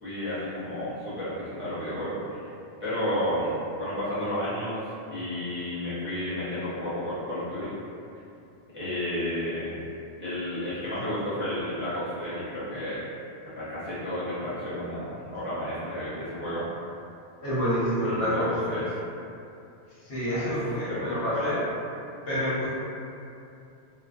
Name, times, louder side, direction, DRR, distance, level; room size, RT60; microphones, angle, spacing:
voice 1, 0.0-2.5 2.8-7.7 8.7-9.8 10.2-13.0 13.5-16.6 18.0-18.4 18.7-18.8 20.3-20.5 20.9-21.5, left 1 dB, 15° right, -13 dB, 0.5 m, -32 dB
voice 2, 17.4-18.8 20.0-21.6 22.3-22.7, equal, 75° left, -9 dB, 1.1 m, -27 dB
2.5 x 2.1 x 2.3 m, 2.6 s
omnidirectional pair, 1.1 m